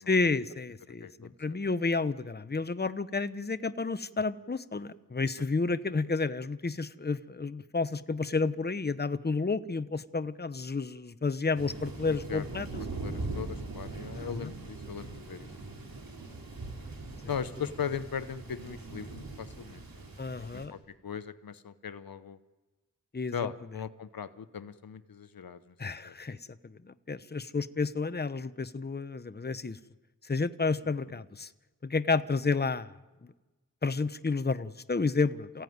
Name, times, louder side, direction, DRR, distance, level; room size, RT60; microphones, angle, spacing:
voice 1, 0.1-12.7 14.2-14.5 20.2-20.7 23.1-23.5 25.8-26.4 26.6-29.8 30.2-31.5 31.8-32.9 33.2-33.3 33.8-35.6, left 4 dB, 30° left, 13 dB, 0.9 m, -31 dB
voice 2, 1.0-1.6 5.4-5.5 12.1-12.5 13.0-15.5 17.3-20.1 20.4-22.4 23.3-25.7 26.0-26.1, left 7 dB, 85° left, 12 dB, 0.9 m, -39 dB
Thunder, 11.6-20.7, right 2 dB, 90° right, 3.6 m, -41 dB
28.5 x 15.5 x 9.5 m, 1.2 s
cardioid pair, 45°, 34 cm